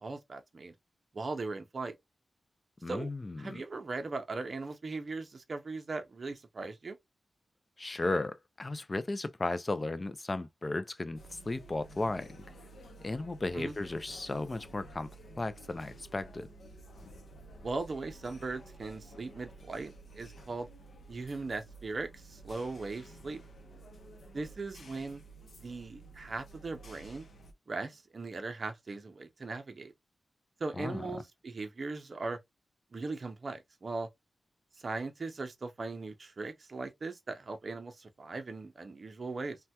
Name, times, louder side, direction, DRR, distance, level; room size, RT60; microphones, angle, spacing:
voice 1, 0.0-0.7 1.1-2.0 2.9-3.1 3.4-7.0 13.5-13.7 17.6-20.7 21.1-23.4 24.3-25.2 25.6-27.3 27.7-29.9 30.6-32.4 32.9-34.1 34.8-39.6, right 3 dB, 45° right, 0.5 m, -39 dB
voice 2, 2.8-3.6 7.8-12.3 13.0-15.1 15.4-16.5 30.8-31.0, left 2 dB, 25° left, 0.3 m, -35 dB
sound 1, 11.2-27.5, right 2 dB, 65° left, 0.6 m, -52 dB
3.3 x 2.2 x 2.8 m
wide cardioid pair, 135°, 0 cm